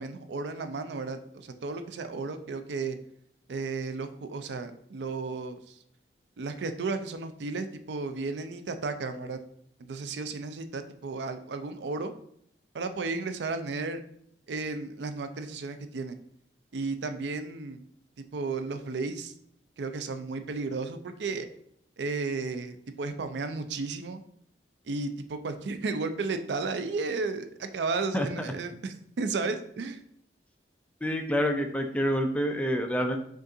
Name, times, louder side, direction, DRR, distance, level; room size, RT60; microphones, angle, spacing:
voice 1, 0.0-3.0 3.5-5.8 6.4-9.4 9.8-12.1 12.7-14.0 14.5-16.2 16.7-17.8 18.3-19.3 19.8-21.5 22.0-24.2 24.9-30.0, right 3 dB, 75° right, 9 dB, 0.4 m, -33 dB
voice 2, 31.0-33.2, equal, 10° left, 5 dB, 0.3 m, -27 dB
5.2 x 2.5 x 3.7 m, 0.67 s
head